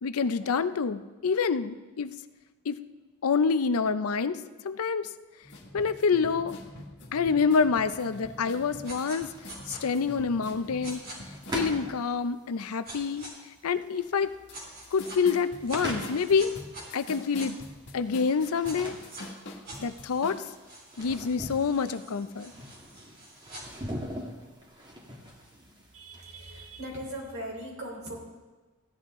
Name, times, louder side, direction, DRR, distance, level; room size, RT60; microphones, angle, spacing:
voice 1, 0.0-2.1 2.7-2.8 3.2-5.1 5.7-6.6 7.1-9.3 9.7-11.0 11.5-13.3 13.6-14.3 14.9-16.6 16.9-17.6 17.9-19.0 19.8-20.4 21.0-22.5, left 5 dB, 75° left, 12 dB, 0.5 m, -27 dB
sound 1, 5.4-12.0 14.5-14.6 14.8-20.4, left 1 dB, 55° left, 1.7 m, -44 dB
sound 2, 8.0-27.1, equal, 20° right, 1.7 m, -42 dB
sound 3, 8.8-9.2 9.5-9.8 10.8-11.2 12.8-13.3 14.5-15.2 15.7-17.5 18.6-19.2 19.6-23.6, right 1 dB, 45° right, 3.5 m, -46 dB
voice 2, 25.9-28.2, right 1 dB, 65° right, -2 dB, 3.7 m, -39 dB
15.5 x 11.0 x 3.7 m, 1.2 s
head